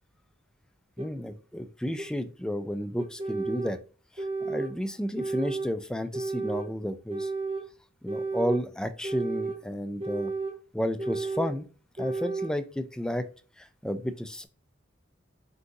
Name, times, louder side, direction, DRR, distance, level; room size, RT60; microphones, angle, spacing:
voice 1, 1.0-3.8 4.2-7.3 8.0-10.3 10.7-11.7 12.0-13.3 13.6-14.5, equal, 5° left, 9 dB, 0.3 m, -32 dB
sound 1, 1.0-1.1 2.0-2.1 3.0-3.7 4.2-4.7 5.2-5.7 6.1-6.7 7.1-7.7 8.1-8.6 9.0-9.6 10.0-10.6 11.0-11.5 12.0-12.5, right 3 dB, 30° right, 0.8 m, -32 dB
4.6 x 2.6 x 3.8 m, 0.36 s
head